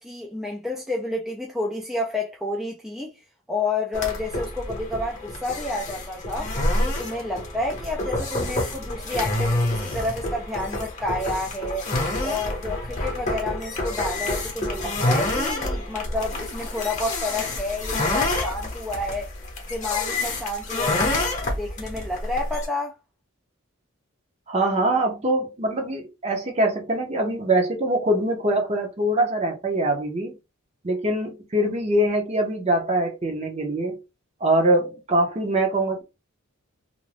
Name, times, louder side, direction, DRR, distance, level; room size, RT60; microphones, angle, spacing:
voice 1, 0.0-3.1 3.5-6.5 6.8-11.9 12.2-19.3 19.7-21.3 21.6-22.9, left 2 dB, 5° right, 0.4 m, -30 dB
sound 1, 3.9-22.7, left 2 dB, 35° left, 0.8 m, -28 dB
voice 2, 24.5-30.4 30.8-34.0 34.4-36.0, right 1 dB, 30° right, 0.7 m, -23 dB
2.5 x 2.2 x 3.2 m
head